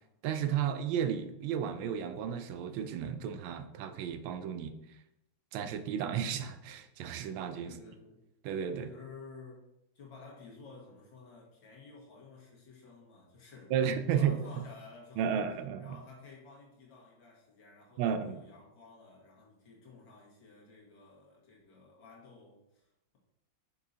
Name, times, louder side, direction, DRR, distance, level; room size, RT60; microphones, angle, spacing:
voice 1, 0.2-4.7 5.5-7.7 8.4-8.9 13.7-14.4 15.2-16.0 18.0-18.4, right 8 dB, 80° right, 9 dB, 1.3 m, -33 dB
voice 2, 7.6-8.2 8.9-9.7 9.9-13.7 14.1-15.5 15.8-23.2, left 4 dB, 70° left, -4 dB, 2.3 m, -53 dB
6.4 x 5.6 x 2.7 m, 0.88 s
omnidirectional pair, 2.2 m